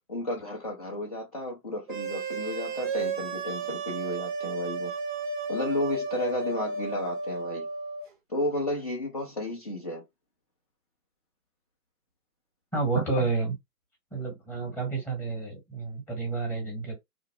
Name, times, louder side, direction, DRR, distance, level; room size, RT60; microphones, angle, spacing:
voice 1, 0.1-4.9 5.5-7.7 8.3-10.0 12.9-13.2, left 1 dB, 30° left, 0.4 m, -32 dB
sound 1, 1.9-8.0, right 4 dB, 35° right, 0.4 m, -33 dB
voice 2, 12.7-13.5 14.1-16.9, right 3 dB, 5° left, 0.9 m, -30 dB
2.8 x 2.0 x 3.0 m
figure-of-eight pair, 130°, 47 cm